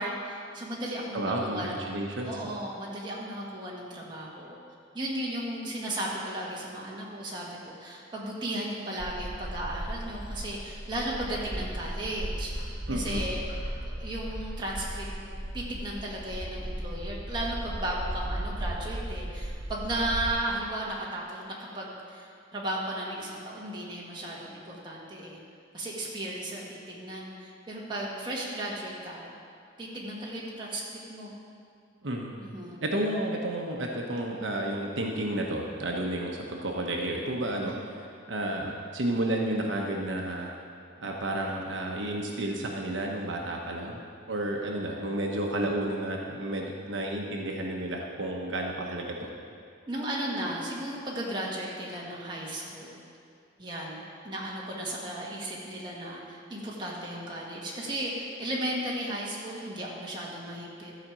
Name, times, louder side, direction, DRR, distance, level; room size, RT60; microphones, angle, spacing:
voice 1, 0.0-1.7 2.2-4.6 4.9-13.4 13.8-21.4 21.7-25.4 25.7-29.3 29.8-30.8 31.1-31.3 32.4-32.8 37.6-37.8 49.9-53.0 53.6-60.9, right 1 dB, 25° right, -5 dB, 1.9 m, -35 dB
voice 2, 1.1-2.4 12.9-13.2 32.0-32.3 32.8-37.7 38.3-40.5 41.0-44.0 44.3-49.3, right 1 dB, 75° right, 0 dB, 1.0 m, -31 dB
Bird, 9.0-20.3, right 1 dB, 40° right, 1.9 m, -36 dB
13.0 x 5.1 x 7.4 m, 2.3 s
head